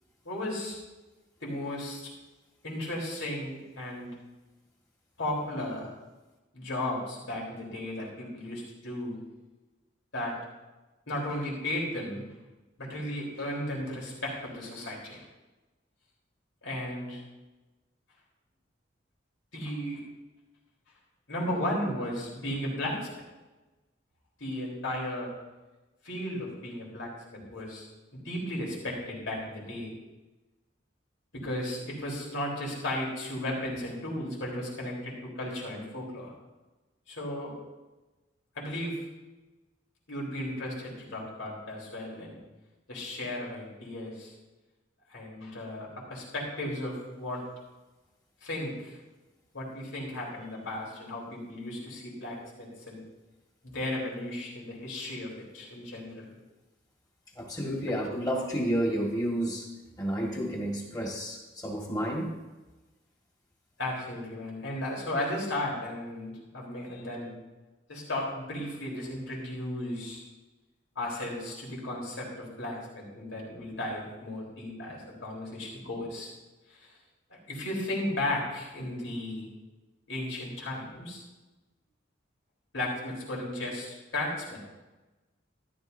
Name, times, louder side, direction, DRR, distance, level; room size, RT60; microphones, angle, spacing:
voice 1, 0.2-0.8 1.4-2.1 2.6-4.1 5.2-5.9 6.5-9.2 10.1-10.4 11.1-12.2 12.8-15.3 16.6-17.2 19.5-20.0 21.3-23.2 24.4-25.3 26.0-27.9 28.1-29.9 31.3-36.3 37.1-37.5 38.5-39.0 40.1-42.4 42.9-44.3 45.1-47.4 48.4-49.0 49.5-53.0 53.6-56.3 57.9-58.0 63.8-67.3 67.9-70.2 70.9-76.3 76.7-76.9 77.3-79.5 80.1-81.2 82.7-84.6, left 1 dB, 90° left, -4 dB, 4.1 m, -35 dB
voice 2, 57.4-59.7 60.0-62.3, equal, 20° left, -1 dB, 1.9 m, -30 dB
14.0 x 12.0 x 2.8 m, 1.1 s
head